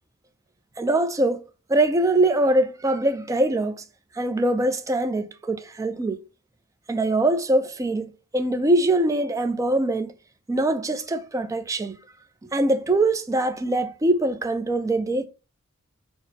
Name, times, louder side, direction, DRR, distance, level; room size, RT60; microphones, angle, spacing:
voice 1, 0.8-3.8 4.2-6.2 6.9-10.1 10.5-12.0 12.5-15.3, right 2 dB, 15° right, 0.3 m, -23 dB
6.0 x 2.0 x 2.7 m
head